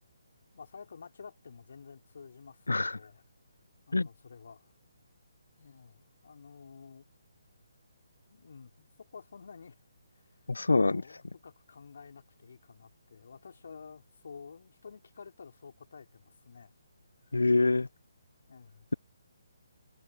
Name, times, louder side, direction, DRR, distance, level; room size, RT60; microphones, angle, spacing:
voice 1, 0.5-3.2 3.9-4.7 5.6-7.1 8.3-9.7 10.1-16.7 17.3-17.8 18.5-18.9, left 5 dB, 60° left, 5.0 m, -51 dB
voice 2, 2.7-3.0 3.9-4.1 10.5-11.0 17.3-17.9, left 3 dB, 80° left, 0.4 m, -25 dB
figure-of-eight pair, 145°, 0 cm